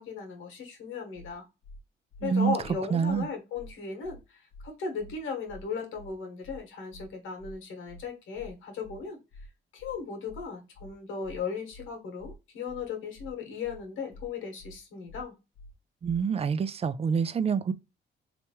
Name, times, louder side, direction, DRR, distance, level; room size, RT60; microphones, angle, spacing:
voice 1, 0.0-1.4 2.2-9.2 9.7-15.3, left 5 dB, 85° left, 1.5 m, -36 dB
sound 1, 1.1-1.3 1.6-1.8 2.1-2.3 2.6-2.7 3.1-3.2 3.5-3.7 4.0-4.2 4.5-4.7 5.0-5.1 5.5-5.6 5.9-6.1 6.4-6.6 6.9-7.1 7.4-7.5 7.9-8.0 8.3-8.5 8.8-9.0 9.3-9.5 9.8-9.9 10.3-10.4 10.7-10.9 11.2-11.4 11.7-11.9 12.2-12.3 12.7-12.8 13.1-13.3 13.6-13.8 14.1-14.3 14.6-14.7 15.1-15.2 15.5-15.7 16.0-16.2, left 1 dB, 65° left, 0.9 m, -48 dB
voice 2, 2.2-2.6 2.9-3.3 16.0-17.7, right 6 dB, 30° right, 0.4 m, -26 dB
3.3 x 3.0 x 2.8 m
cardioid pair, 90°, 20 cm